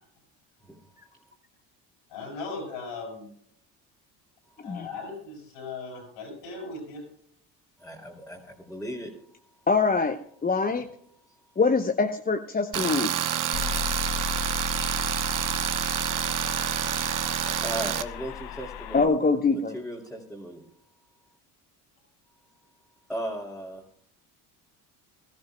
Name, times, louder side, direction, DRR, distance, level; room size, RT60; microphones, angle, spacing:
voice 1, 2.1-3.3 4.6-7.0, left 3 dB, 80° left, 2 dB, 6.4 m, -38 dB
voice 2, 7.8-9.1 17.5-19.1 19.5-20.6 23.1-23.8, equal, ahead, -4 dB, 2.6 m, -36 dB
voice 3, 9.7-10.9 11.6-13.1 18.9-19.7, left 4 dB, 20° left, 6 dB, 0.8 m, -24 dB
Tools, 12.7-18.0, right 10 dB, 45° right, 0.9 m, -28 dB
sound 1, 13.5-19.1, left 9 dB, 55° left, 1.0 m, -35 dB
20.0 x 13.0 x 2.2 m, 0.65 s
supercardioid pair, 75°, 46 cm